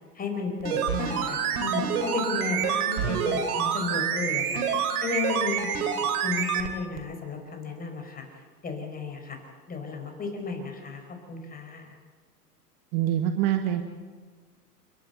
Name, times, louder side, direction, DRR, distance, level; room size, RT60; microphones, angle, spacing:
voice 1, 0.0-5.9 6.2-8.2 8.6-9.4 9.7-11.0 11.3-12.0, left 4 dB, 20° left, 4 dB, 4.6 m, -33 dB
sound 1, 0.6-6.7 7.0-7.1, right 7 dB, 65° right, 3.2 m, -27 dB
voice 2, 12.9-13.8, right 11 dB, 40° right, 6 dB, 1.5 m, -25 dB
30.0 x 12.0 x 8.0 m, 1.5 s
hypercardioid pair, 115°, 49 cm